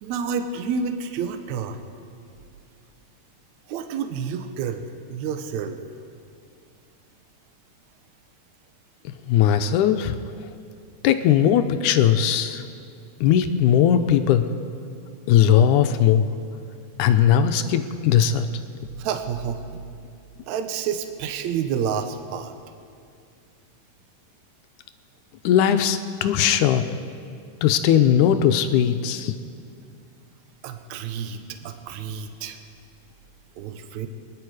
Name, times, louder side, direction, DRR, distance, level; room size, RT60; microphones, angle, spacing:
voice 1, 0.0-1.8 3.7-4.8 5.1-5.8 19.0-19.6 20.4-22.6 30.6-32.6 33.6-34.1, right 7 dB, 70° right, 7 dB, 2.0 m, -29 dB
voice 2, 9.2-10.2 11.0-12.6 13.2-14.5 15.3-16.3 17.0-18.5 25.4-26.8 27.6-29.3, left 9 dB, 80° left, 9 dB, 2.0 m, -19 dB
24.5 x 10.5 x 4.8 m, 2.4 s
omnidirectional pair, 3.8 m